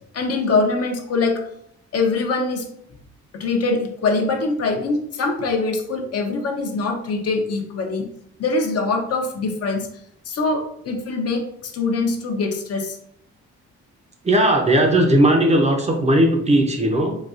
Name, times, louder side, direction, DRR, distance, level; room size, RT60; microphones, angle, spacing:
voice 1, 0.1-1.4 1.9-2.7 3.3-8.1 8.4-9.9 10.3-13.0, left 3 dB, 55° left, 3 dB, 0.6 m, -23 dB
voice 2, 14.2-17.2, right 1 dB, 20° right, 2 dB, 0.5 m, -17 dB
4.0 x 2.3 x 2.4 m, 0.71 s
cardioid pair, 90°, 30 cm